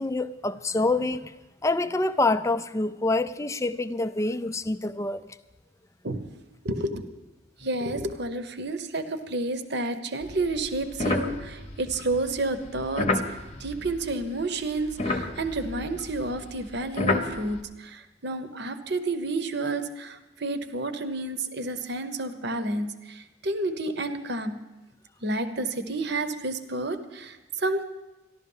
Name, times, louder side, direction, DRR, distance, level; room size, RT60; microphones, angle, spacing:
voice 1, 0.0-1.3 1.6-5.4 13.5-13.6, left 2 dB, 15° left, 0.3 m, -26 dB
voice 2, 6.6-7.0 7.6-13.1 13.6-24.6 25.2-27.8, right 2 dB, 55° right, 0.9 m, -30 dB
sound 1, 10.2-14.5 14.7-17.6, left 2 dB, 30° left, 0.9 m, -31 dB
14.0 x 12.0 x 5.5 m
head